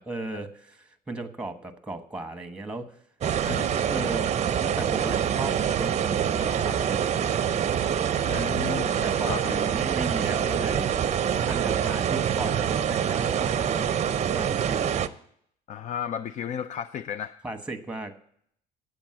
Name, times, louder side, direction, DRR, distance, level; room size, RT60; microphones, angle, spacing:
voice 1, 0.0-2.9 3.9-5.9 6.3-7.2 8.4-10.9 11.5-13.9 14.3-14.9 17.4-18.1, right 2 dB, 5° right, 7 dB, 1.1 m, -36 dB
sound 1, 3.2-15.1, right 8 dB, 40° right, 0.6 m, -25 dB
voice 2, 3.4-3.9 8.2-9.6 15.7-17.4, left 8 dB, 45° left, 14 dB, 0.4 m, -34 dB
9.0 x 7.1 x 7.7 m, 0.66 s
cardioid pair, 110°, 17 cm